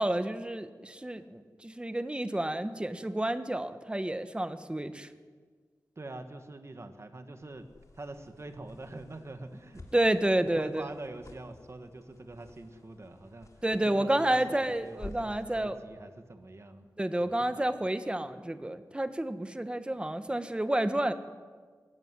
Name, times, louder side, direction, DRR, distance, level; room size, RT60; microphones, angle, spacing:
voice 1, 0.0-5.1 9.9-10.8 13.6-15.8 17.0-21.1, right 1 dB, 15° right, 10 dB, 1.3 m, -30 dB
voice 2, 5.9-7.7 7.9-9.9 10.4-16.9 17.2-17.6, right 2 dB, 40° right, 7 dB, 1.7 m, -45 dB
sound 1, 7.4-15.5, left 2 dB, 50° left, 3.1 m, -52 dB
21.0 x 16.0 x 9.7 m, 1.5 s
wide cardioid pair, 85°, 7 cm